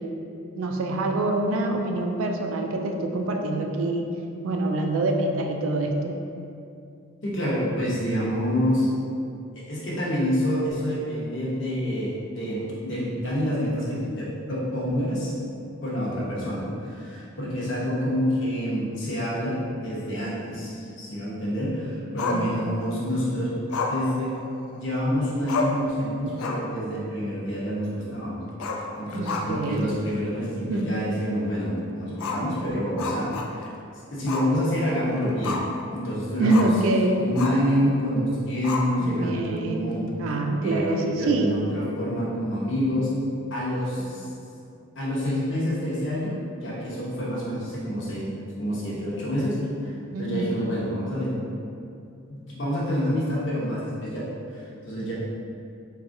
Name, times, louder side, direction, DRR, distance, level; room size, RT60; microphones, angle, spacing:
voice 1, 0.5-4.1 4.4-6.2 22.3-22.6 29.1-29.9 30.6-30.9 36.4-37.2 39.0-41.6 44.0-44.1 50.1-50.5, right 2 dB, 75° right, 3 dB, 0.3 m, -25 dB
voice 2, 7.2-8.9 9.5-15.5 15.8-23.5 23.9-24.4 24.7-28.4 28.7-33.7 34.1-35.6 35.9-36.7 37.2-40.1 40.6-43.1 43.5-44.3 45.0-48.3 48.6-51.4 52.3-55.1, equal, 55° left, -7 dB, 0.8 m, -27 dB
Growling, 22.2-23.0 23.7-24.9 25.2-25.3 25.5-25.9 26.3-26.8 27.1-27.2 28.5-29.8 30.1-30.2 30.7-30.8 32.1-33.8 34.3-34.5 34.9-35.8 36.5-36.8 37.3-37.7 38.6-39.3, left 3 dB, 85° left, 0.3 m, -31 dB
4.0 x 2.3 x 2.6 m, 2.6 s
head